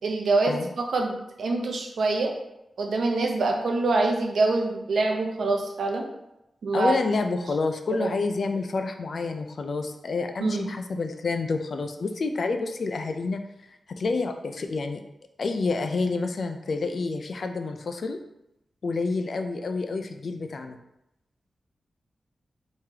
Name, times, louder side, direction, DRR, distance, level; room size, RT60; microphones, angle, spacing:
voice 1, 0.0-2.3 2.8-6.0 6.6-6.9 7.9-8.1 10.4-10.8, right 3 dB, 90° right, 2 dB, 0.6 m, -25 dB
voice 2, 6.7-13.4 14.0-15.0 15.4-18.2 18.8-20.8, left 3 dB, 60° left, 6 dB, 0.3 m, -28 dB
3.7 x 3.1 x 2.8 m, 0.86 s
wide cardioid pair, 120°, 0 cm